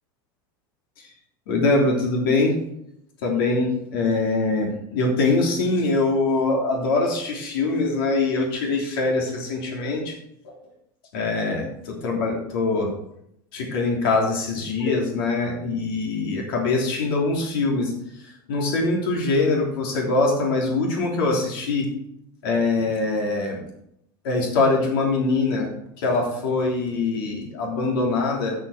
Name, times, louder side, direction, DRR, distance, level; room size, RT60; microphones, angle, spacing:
voice 1, 1.5-2.5 3.2-10.1 11.1-12.9 13.5-17.9 18.5-21.9 22.4-23.6 24.2-25.7 26.0-28.5, left 3 dB, 80° left, -1 dB, 3.3 m, -23 dB
12.5 x 6.4 x 5.0 m, 0.76 s
supercardioid pair, 140°, 12 cm